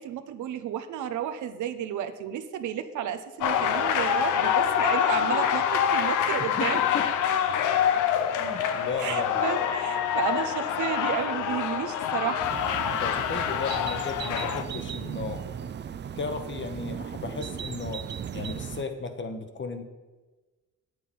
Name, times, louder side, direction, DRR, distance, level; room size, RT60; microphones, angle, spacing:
voice 1, 0.0-6.8 9.0-12.4, right 10 dB, 75° right, 9 dB, 0.8 m, -32 dB
sound 1, 3.4-14.6, left 9 dB, 85° left, 0.8 m, -26 dB
voice 2, 6.4-7.1 8.4-9.4 13.0-15.4 16.2-18.1 18.3-19.8, left 4 dB, 40° left, 7 dB, 1.2 m, -35 dB
sound 2, 12.4-18.8, right 8 dB, 35° right, 0.5 m, -36 dB
8.4 x 8.0 x 5.4 m, 1.3 s
cardioid pair, 90°, 30 cm